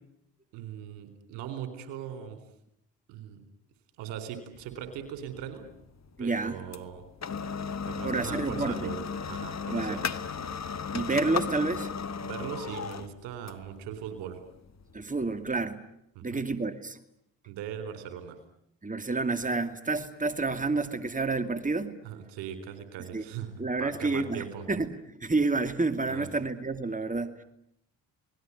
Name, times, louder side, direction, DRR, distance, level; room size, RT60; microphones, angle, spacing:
voice 1, 0.5-2.4 3.1-3.4 4.0-5.7 6.2-7.0 7.8-9.0 9.3-10.0 12.2-14.4 16.2-16.4 17.5-18.4 22.0-23.5 23.8-24.6 26.1-26.3, right 9 dB, 80° right, 10 dB, 4.1 m, -39 dB
sound 1, 4.5-15.7, left 6 dB, 40° left, 1.7 m, -36 dB
voice 2, 6.2-6.6 8.0-8.8 9.7-10.0 10.9-11.9 14.9-15.9 16.2-17.0 18.8-22.0 23.1-23.2 23.6-27.3, right 3 dB, 20° right, 10 dB, 2.5 m, -29 dB
29.5 x 20.0 x 9.8 m, 0.79 s
hypercardioid pair, 50°, 42 cm